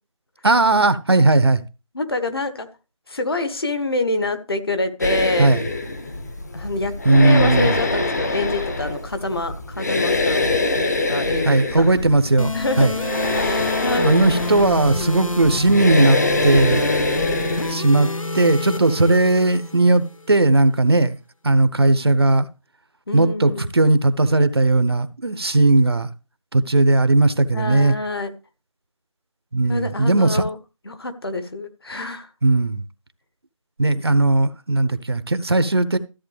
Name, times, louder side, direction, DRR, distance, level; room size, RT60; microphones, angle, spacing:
voice 1, 0.4-1.6 5.4-5.6 7.0-7.7 11.4-12.5 12.8-12.9 14.0-16.8 17.7-18.1 18.3-21.2 21.4-22.5 23.1-26.1 26.5-28.0 29.5-30.4 32.4-32.8 33.8-36.0, right 2 dB, 50° right, 0.9 m, -17 dB
voice 2, 1.9-2.7 3.1-5.5 6.5-10.5 11.1-11.5 11.8-11.9 12.5-12.9 13.3-14.2 23.1-23.7 27.5-28.3 29.7-30.6 30.8-32.3, left 2 dB, 45° left, 1.4 m, -26 dB
sound 1, 5.0-17.7, left 2 dB, 30° left, 1.0 m, -24 dB
sound 2, 12.4-20.4, left 2 dB, 85° left, 1.1 m, -28 dB
14.0 x 8.0 x 3.3 m
figure-of-eight pair, 170°, 17 cm